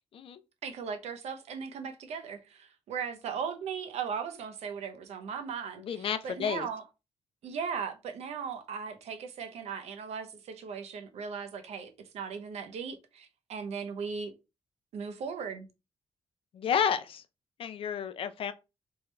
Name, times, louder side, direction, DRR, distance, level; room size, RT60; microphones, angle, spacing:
voice 1, 0.6-6.8 7.4-14.3 14.9-15.7, right 6 dB, 90° right, 0.8 m, -38 dB
voice 2, 5.8-6.7 16.5-17.2 17.6-18.5, left 8 dB, 55° left, 0.5 m, -31 dB
3.5 x 3.2 x 3.1 m
wide cardioid pair, 150°, 11 cm